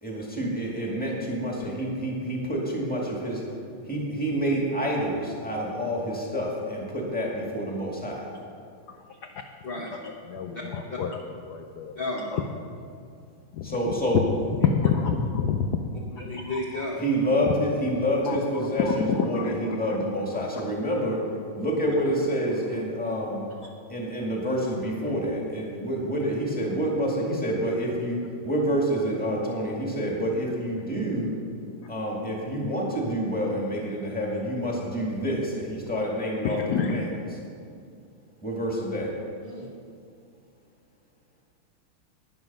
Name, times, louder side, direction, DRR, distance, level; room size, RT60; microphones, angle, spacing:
voice 1, 0.0-3.4 3.8-8.3 13.6-14.2 17.0-21.3 21.6-23.5 23.9-31.3 31.9-37.1 38.4-39.1, equal, 5° left, -2 dB, 1.8 m, -28 dB
voice 2, 10.0-11.2 11.5-11.9 12.3-12.4 13.5-13.8 14.1-14.2 14.6-15.7 16.1-16.8 18.2-20.0 20.3-20.5 23.6-23.7 36.4-37.0, left 7 dB, 70° left, 5 dB, 0.9 m, -28 dB
voice 3, 12.0-12.4 16.1-17.0 39.4-39.7, left 2 dB, 35° left, -3 dB, 1.0 m, -33 dB
12.0 x 9.8 x 5.5 m, 2.3 s
omnidirectional pair, 2.4 m